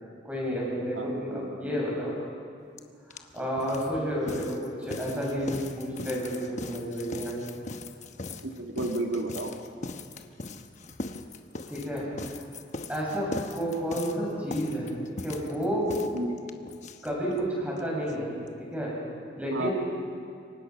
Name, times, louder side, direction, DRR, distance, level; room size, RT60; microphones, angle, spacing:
voice 1, 0.2-2.2 3.1-7.4 11.7-12.1 12.9-16.0 17.0-18.3 18.6-18.9 19.4-19.7, equal, 10° right, -4 dB, 7.3 m, -31 dB
voice 2, 0.9-1.5 3.4-3.5 8.4-9.5 16.1-16.4 19.5-19.7, right 2 dB, 90° right, 2 dB, 2.3 m, -32 dB
sound 1, 2.8-2.9 3.1-17.5 17.8-17.9 18.1-18.2 18.5-18.6, left 2 dB, 40° left, 1.1 m, -40 dB
28.0 x 24.0 x 6.0 m, 2.3 s
head